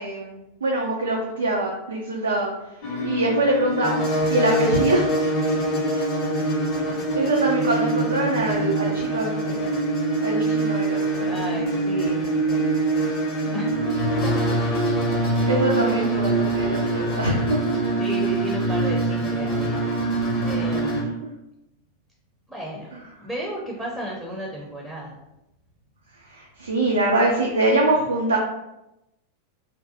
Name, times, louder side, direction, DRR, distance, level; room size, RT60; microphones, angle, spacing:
voice 1, 0.0-2.8 3.0-3.9 4.3-5.1 5.7-5.8 6.4-6.6 7.1-9.6 10.2-11.3 15.4-17.7 20.4-20.5 26.2-28.4, right 1 dB, 70° right, -1 dB, 0.3 m, -24 dB
sound 1, 2.8-21.0, right 2 dB, 35° left, 0.6 m, -24 dB
voice 2, 11.2-12.3 13.5-14.0 14.2-14.5 15.7-16.4 18.0-20.1 20.5-21.2 22.5-25.2, right 1 dB, 5° right, -3 dB, 0.5 m, -34 dB
2.6 x 2.1 x 2.6 m, 0.91 s
figure-of-eight pair, 90°, 0 cm